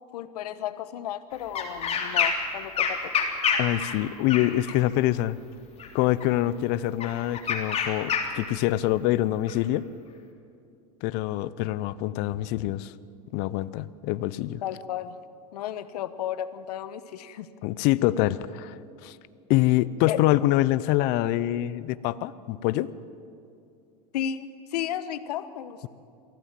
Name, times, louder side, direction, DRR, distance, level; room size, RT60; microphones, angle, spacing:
voice 1, 0.1-3.1 14.6-15.2 15.5-17.5 20.1-20.2 24.1-25.9, left 10 dB, 75° left, 14 dB, 1.1 m, -33 dB
sound 1, 1.5-2.5 2.8-4.8 5.8-6.2 7.0-8.5 9.5-9.6, left 6 dB, 30° left, 3.1 m, -27 dB
voice 2, 3.6-5.4 5.9-9.9 11.0-12.9 13.3-14.6 17.6-19.2 19.5-22.9, left 15 dB, 55° left, 17 dB, 0.7 m, -25 dB
23.0 x 15.0 x 7.5 m, 2.5 s
hypercardioid pair, 100°, 20 cm